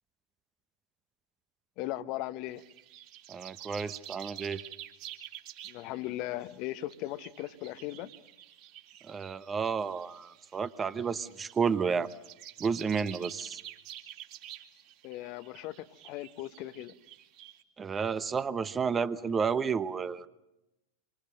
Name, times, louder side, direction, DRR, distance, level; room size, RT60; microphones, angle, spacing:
voice 1, 1.8-2.6 5.6-8.1 15.0-16.9, left 15 dB, 40° left, 1.0 m, -38 dB
sound 1, 2.5-17.6, right 12 dB, 45° right, 3.6 m, -49 dB
voice 2, 3.3-4.6 9.0-12.1 12.6-13.6 17.8-20.3, right 6 dB, 20° right, 0.9 m, -31 dB
27.0 x 25.5 x 6.5 m
figure-of-eight pair, 90°, 0 cm